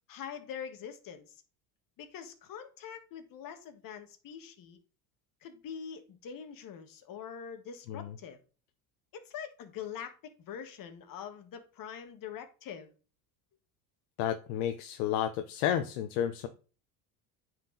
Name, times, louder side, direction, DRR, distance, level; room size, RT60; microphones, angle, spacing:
voice 1, 0.1-1.4 2.0-4.8 5.4-8.4 9.1-12.9, left 8 dB, 50° left, 1.6 m, -44 dB
voice 2, 14.2-16.5, left 10 dB, 90° left, 0.9 m, -31 dB
9.4 x 4.6 x 4.0 m
cardioid pair, 115°, 42 cm